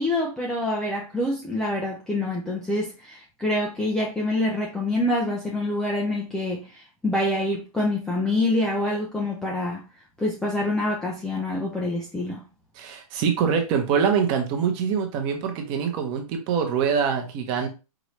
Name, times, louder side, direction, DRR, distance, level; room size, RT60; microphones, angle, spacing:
voice 1, 0.0-9.8 10.2-12.4, left 1 dB, 5° left, 0.4 m, -26 dB
voice 2, 12.8-17.7, right 7 dB, 25° right, 0.9 m, -24 dB
4.9 x 2.6 x 3.1 m
hypercardioid pair, 145°, 19 cm